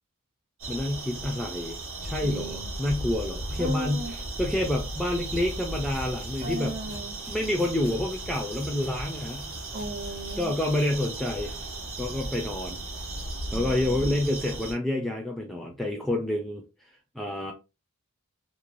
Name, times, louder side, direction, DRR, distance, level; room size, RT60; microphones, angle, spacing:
sound 1, 0.6-14.7, right 2 dB, 60° right, 1.0 m, -36 dB
voice 1, 0.7-4.1 4.4-6.8 7.3-9.5 10.4-11.5 12.0-12.8 13.5-16.6 17.1-17.5, left 1 dB, ahead, 0.3 m, -28 dB
voice 2, 2.2-2.7 3.6-4.2 6.4-7.1 9.7-10.6, right 1 dB, 35° right, 0.7 m, -36 dB
sound 2, 5.1-10.4, left 2 dB, 80° left, 0.6 m, -47 dB
3.0 x 2.2 x 2.5 m
head